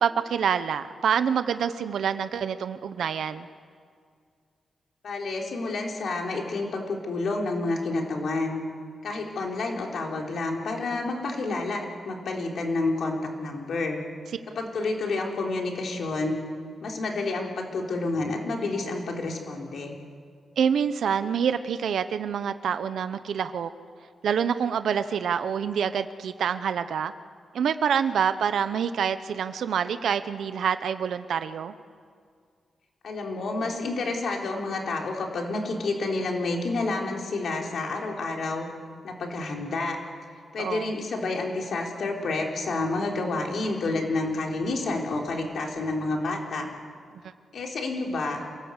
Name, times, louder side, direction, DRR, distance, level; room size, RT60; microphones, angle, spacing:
voice 1, 0.0-3.5 20.6-23.7 24.2-27.1 27.5-31.7 40.6-40.9, right 7 dB, 85° right, 11 dB, 0.9 m, -26 dB
voice 2, 5.0-8.6 9.0-14.0 14.6-16.4 16.8-20.0 33.0-38.7 39.0-40.0 40.5-46.7 47.5-48.4, left 3 dB, 65° left, 1 dB, 3.8 m, -29 dB
27.0 x 18.5 x 8.2 m, 2.1 s
wide cardioid pair, 140°, 0 cm